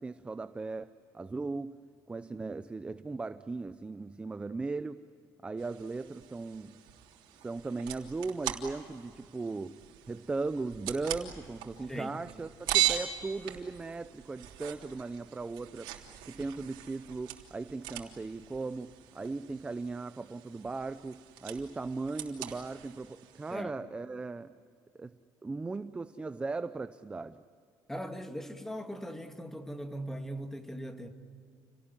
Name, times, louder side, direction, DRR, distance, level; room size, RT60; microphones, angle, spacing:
voice 1, 0.0-1.7 2.1-5.0 5.4-6.8 7.4-9.8 10.1-15.9 16.3-24.5 24.9-27.4, right 3 dB, 15° right, 0.6 m, -38 dB
sound 1, 5.6-23.6, right 12 dB, 90° right, 3.3 m, -39 dB
voice 2, 27.9-31.1, equal, 5° left, 1.9 m, -39 dB
29.5 x 18.5 x 9.8 m
cardioid pair, 145°, 8 cm